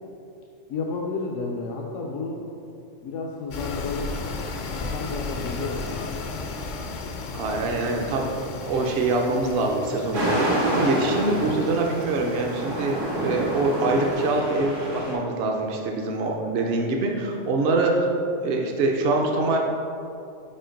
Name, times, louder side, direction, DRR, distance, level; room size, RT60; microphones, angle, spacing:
voice 1, 0.7-2.4 3.0-4.1 4.6-6.0 11.2-11.5, left 3 dB, 85° left, -2 dB, 1.0 m, -31 dB
sound 1, 3.5-14.4, left 3 dB, 60° left, 0.5 m, -35 dB
voice 2, 7.3-8.3 8.6-18.1 18.4-19.6, right 2 dB, 60° right, 0 dB, 0.8 m, -24 dB
sound 2, 10.1-15.1, right 1 dB, 85° right, 1.8 m, -28 dB
5.6 x 4.5 x 5.1 m, 2.6 s
omnidirectional pair, 1.2 m